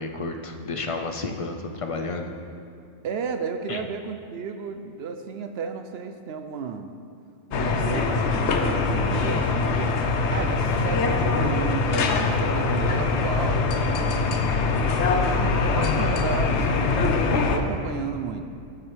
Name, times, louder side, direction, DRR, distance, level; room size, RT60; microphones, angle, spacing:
voice 1, 0.0-2.3 3.7-3.8, left 3 dB, 50° left, 4 dB, 0.4 m, -31 dB
voice 2, 3.0-6.9 7.5-10.0 10.3-18.5, right 6 dB, 65° right, 7 dB, 0.7 m, -33 dB
sound 1, 7.5-17.6, left 4 dB, 65° left, 1.0 m, -23 dB
14.0 x 7.6 x 3.3 m, 2.4 s
omnidirectional pair, 1.3 m